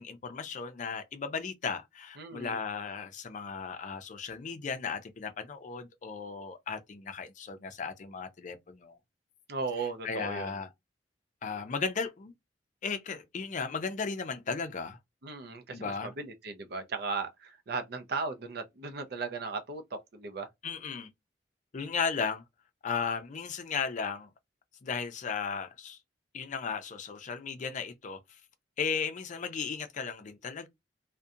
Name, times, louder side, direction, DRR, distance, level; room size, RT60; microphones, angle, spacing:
voice 1, 0.0-9.0 9.8-10.7 11.4-12.3 12.8-15.0 15.7-16.1 20.6-21.1 21.7-22.4 22.8-24.3 24.8-26.0 26.3-28.4 28.8-30.7, left 5 dB, 45° left, 0.4 m, -35 dB
voice 2, 2.2-2.6 9.5-10.5 15.2-20.5, right 4 dB, 60° right, 0.5 m, -37 dB
2.7 x 2.1 x 2.4 m
head